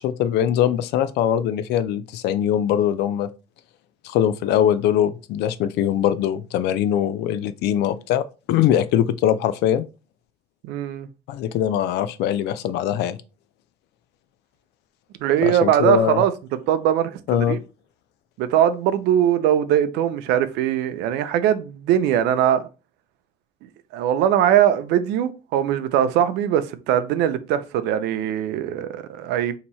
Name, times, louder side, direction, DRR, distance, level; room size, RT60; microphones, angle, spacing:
voice 1, 0.0-3.3 4.0-9.8 11.3-13.2 15.4-16.2 17.3-17.6, left 10 dB, 80° left, 0.4 m, -22 dB
voice 2, 10.6-11.1 15.2-16.3 16.7-17.2 17.5-17.6 18.4-22.6 23.9-29.5, right 10 dB, 90° right, 0.5 m, -21 dB
2.9 x 2.7 x 4.2 m
cardioid pair, 110°, 17 cm